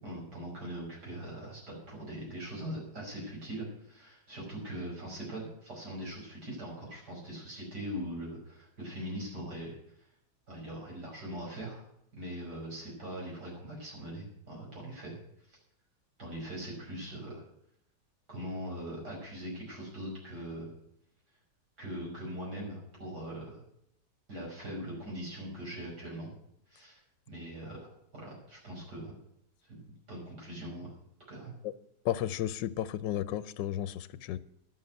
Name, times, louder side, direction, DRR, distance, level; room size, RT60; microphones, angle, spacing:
voice 1, 0.0-9.8 10.5-11.8 12.1-15.2 15.5-15.6 16.2-17.4 18.3-20.7 21.8-23.6 24.3-26.3 26.7-27.0 27.3-29.1 29.6-29.8 30.1-30.9 31.3-31.5, right 1 dB, 65° right, 6.2 m, -41 dB
voice 2, 32.0-34.4, left 12 dB, 90° left, 1.3 m, -33 dB
11.0 x 7.8 x 9.2 m
omnidirectional pair, 1.9 m